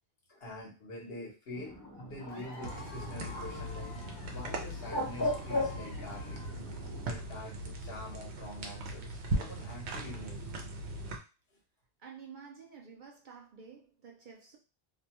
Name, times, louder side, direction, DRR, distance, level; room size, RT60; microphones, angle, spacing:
voice 1, 0.3-4.0 4.3-6.4 7.0-10.5, left 1 dB, 70° left, 1.1 m, -46 dB
Bird, 1.5-7.1, left 1 dB, 25° left, 0.7 m, -38 dB
Cheering / Applause / Crowd, 2.3-7.0, left 4 dB, 90° left, 0.9 m, -52 dB
sound 1, 2.6-11.2, right 1 dB, 90° right, 0.9 m, -39 dB
voice 2, 12.0-14.6, right 6 dB, 55° right, 0.6 m, -51 dB
2.7 x 2.2 x 2.8 m
omnidirectional pair, 1.1 m